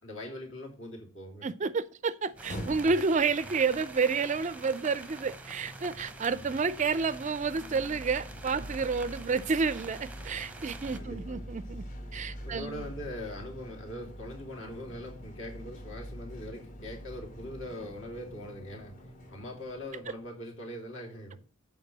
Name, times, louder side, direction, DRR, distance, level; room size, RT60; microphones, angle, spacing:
voice 1, 0.0-1.5 8.6-8.7 10.9-11.5 12.4-21.4, left 1 dB, 55° left, 2.8 m, -42 dB
voice 2, 1.4-11.8 12.1-12.8, right 4 dB, 30° right, 0.4 m, -30 dB
sound 1, 2.2-20.4, equal, 35° left, 1.4 m, -45 dB
sound 2, 2.4-11.0, right 2 dB, 5° right, 0.7 m, -47 dB
8.1 x 4.6 x 7.2 m
head